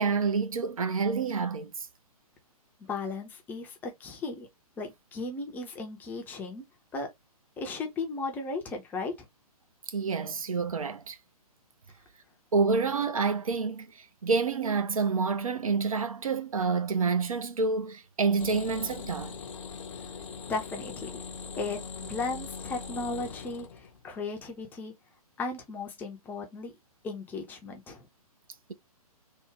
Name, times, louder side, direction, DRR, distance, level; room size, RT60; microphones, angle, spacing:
voice 1, 0.0-1.9 9.9-11.2 12.5-19.4, right 4 dB, 65° right, 0.6 m, -28 dB
voice 2, 2.8-4.5 4.8-6.6 6.9-7.1 7.6-9.3 20.5-21.2 21.6-24.9 25.4-26.7 27.0-28.1, left 3 dB, 10° left, 0.5 m, -36 dB
sound 1, 18.4-24.2 24.5-24.6, left 5 dB, 55° left, 0.6 m, -41 dB
3.4 x 2.2 x 3.0 m
figure-of-eight pair, 125°, 19 cm